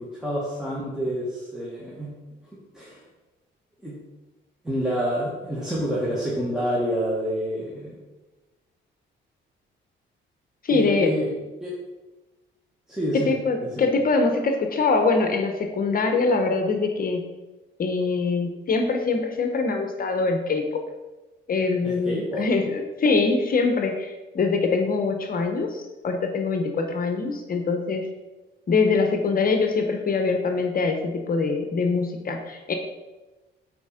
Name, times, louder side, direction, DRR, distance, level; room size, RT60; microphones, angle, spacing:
voice 1, 0.1-2.1 2.7-3.0 3.8-3.9 4.6-8.0 10.7-11.3 11.6-11.7 12.9-13.3 13.6-13.8 21.8-22.4, equal, 5° right, -7 dB, 1.9 m, -28 dB
voice 2, 10.6-11.1 13.1-17.2 17.8-20.6 21.5-28.1 28.7-32.7, left 4 dB, 45° left, 5 dB, 1.0 m, -23 dB
8.1 x 4.4 x 5.0 m, 1.1 s
cardioid pair, 90°, 20 cm